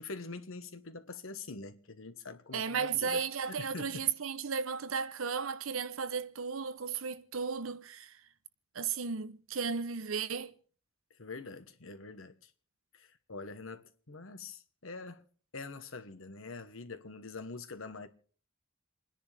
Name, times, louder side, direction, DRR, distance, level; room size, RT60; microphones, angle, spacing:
voice 1, 0.0-3.2 3.5-4.1 11.2-12.5 12.9-15.2 15.5-18.1, left 3 dB, 75° left, 1.3 m, -44 dB
voice 2, 2.5-8.1 8.7-10.5, right 6 dB, 80° right, 0.8 m, -34 dB
28.5 x 10.5 x 3.4 m
head